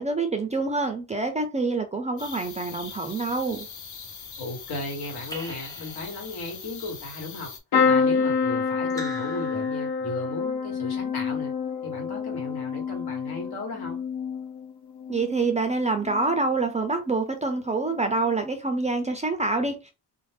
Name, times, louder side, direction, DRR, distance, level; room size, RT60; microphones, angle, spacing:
voice 1, 0.0-3.7 15.1-19.9, right 3 dB, 20° right, 0.3 m, -26 dB
sound 1, 2.2-7.6, left 6 dB, 50° left, 0.6 m, -41 dB
voice 2, 4.4-7.5 7.8-11.5 11.8-14.0, left 2 dB, 75° left, 1.3 m, -36 dB
Raindrop / Drip, 5.3-6.5 8.9-10.3, right 1 dB, 10° left, 0.7 m, -42 dB
sound 2, 7.7-15.6 16.0-16.5 17.8-18.0 18.2-18.3, left 5 dB, 90° left, 0.7 m, -27 dB
2.5 x 2.0 x 3.3 m
cardioid pair, 145°, 39 cm